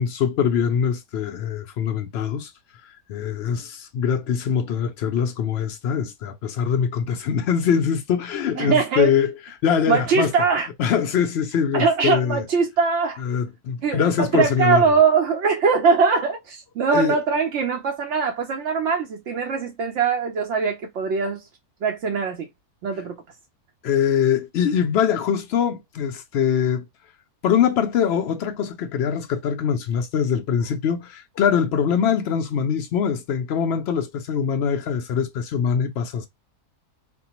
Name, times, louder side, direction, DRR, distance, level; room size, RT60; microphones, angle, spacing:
voice 1, 0.0-2.5 3.1-9.3 9.6-10.3 10.8-12.4 13.2-14.8 16.9-17.2 23.8-26.8 27.4-36.3, left 7 dB, 80° left, 0.5 m, -23 dB
voice 2, 8.6-9.1 9.9-10.7 11.7-13.2 13.8-21.5 21.8-22.5 22.8-23.2, right 5 dB, 60° right, 0.8 m, -21 dB
4.3 x 2.0 x 2.8 m
omnidirectional pair, 1.7 m